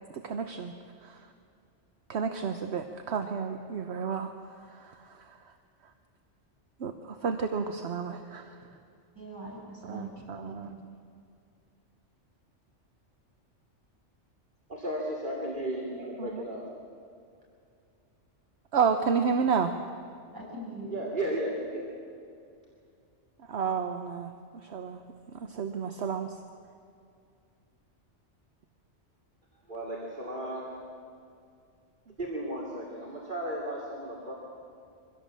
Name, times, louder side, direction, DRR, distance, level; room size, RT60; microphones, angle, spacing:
voice 1, 0.1-0.7 1.0-1.2 2.1-4.3 4.7-5.4 6.8-8.6 9.8-10.7 16.2-16.4 18.7-19.7 23.5-24.3 24.6-25.0 25.3-26.4, right 6 dB, 65° right, 6 dB, 1.2 m, -31 dB
voice 2, 9.1-10.8 20.3-21.0, right 2 dB, 15° right, -5 dB, 6.8 m, -42 dB
voice 3, 14.7-16.6 20.9-21.9 29.7-30.8 32.2-34.3, right 1 dB, 40° right, -4 dB, 2.9 m, -34 dB
23.5 x 16.5 x 7.5 m, 2.4 s
omnidirectional pair, 1.2 m